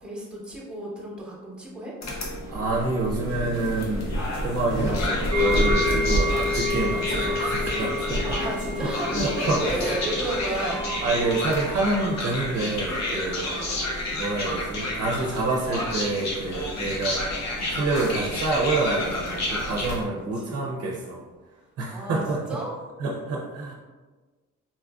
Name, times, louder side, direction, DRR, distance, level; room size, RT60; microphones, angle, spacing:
voice 1, 0.0-1.9 8.2-10.8 13.5-13.7 19.9-20.1 20.4-20.6 21.9-22.2 22.5-22.7, right 1 dB, 5° right, -5 dB, 1.0 m, -32 dB
sound 1, 2.0-20.0, left 1 dB, 65° left, 0.9 m, -29 dB
voice 2, 2.5-8.4 8.8-10.0 11.0-13.7 14.1-17.4 17.7-21.2 21.8-22.6 23.0-23.7, right 2 dB, 55° right, -2 dB, 0.6 m, -28 dB
sound 2, 5.3-14.4 14.7-14.9 15.4-15.5, left 3 dB, 15° left, 0.6 m, -31 dB
4.2 x 2.4 x 2.3 m, 1.3 s
cardioid pair, 90°, 30 cm